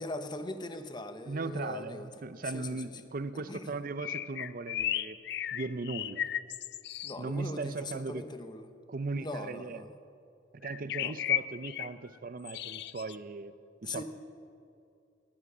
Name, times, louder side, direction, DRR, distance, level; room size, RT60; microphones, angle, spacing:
voice 1, 0.0-2.2 2.5-2.8 3.3-3.8 7.0-8.7 9.2-10.0 11.0-11.1 13.8-14.0, left 2 dB, 25° left, 9 dB, 0.8 m, -41 dB
voice 2, 1.3-5.2 5.5-6.2 7.2-8.3 8.9-9.8 10.5-13.5 13.8-14.0, right 3 dB, 45° right, 13 dB, 0.6 m, -38 dB
sound 1, 4.0-7.2 10.6-11.9 12.4-13.2, left 11 dB, 60° left, 0.4 m, -34 dB
17.5 x 11.0 x 6.1 m, 2.5 s
head